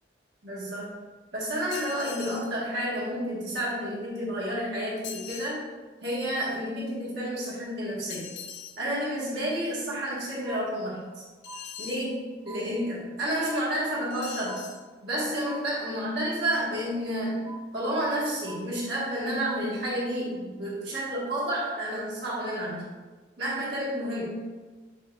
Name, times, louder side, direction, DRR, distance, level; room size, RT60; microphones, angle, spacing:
voice 1, 0.4-0.9 1.3-5.6 6.0-8.3 8.8-11.2 11.8-14.6 15.0-22.9 23.4-24.4, equal, 70° right, -7 dB, 1.4 m, -30 dB
sound 1, 1.7-2.5 5.0-5.6 8.1-8.8 11.4-12.1 14.1-14.8, left 8 dB, 70° left, 0.4 m, -41 dB
sound 2, 10.5-11.2 11.5-12.2 12.5-13.2 13.5-14.2 14.5-15.2 15.5-16.2 16.5-17.2 17.5-18.2 18.5-19.2 19.5-20.2, right 3 dB, 30° right, 1.0 m, -47 dB
6.5 x 2.4 x 2.4 m, 1.3 s
head